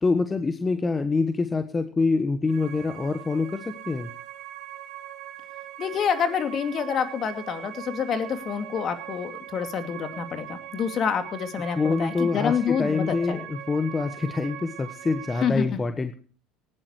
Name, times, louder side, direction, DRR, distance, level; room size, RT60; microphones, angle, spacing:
voice 1, 0.0-4.1 11.7-16.1, left 4 dB, 20° left, 9 dB, 1.3 m, -25 dB
sound 1, 2.5-15.5, right 13 dB, 60° right, 1.7 m, -41 dB
voice 2, 5.8-13.4 15.4-15.7, left 7 dB, 45° left, 8 dB, 2.5 m, -27 dB
19.0 x 15.5 x 3.1 m, 0.41 s
hypercardioid pair, 70°, 0 cm